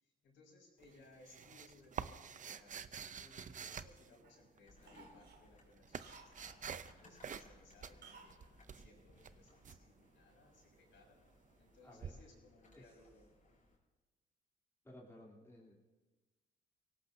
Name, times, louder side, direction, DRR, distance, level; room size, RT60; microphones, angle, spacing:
voice 1, 0.0-2.8 3.2-11.2 11.6-13.4, left 2 dB, 75° left, -3 dB, 5.8 m, -64 dB
sound 1, 0.8-4.6 5.4-6.9 7.2-7.5 7.8-9.8 12.0-12.1, right 7 dB, 40° right, 0.6 m, -47 dB
Cough, 2.6-3.9 4.2-4.5 4.8-6.6 8.0-8.4 8.6-8.7, right 4 dB, 55° right, 2.5 m, -60 dB
sound 2, 4.6-13.8, left 2 dB, 40° left, 4.9 m, -65 dB
voice 2, 11.8-12.2 12.7-12.9 14.8-15.7, left 1 dB, 15° left, -4 dB, 3.1 m, -57 dB
23.5 x 17.5 x 2.8 m, 1.2 s
cardioid pair, 90°, 20 cm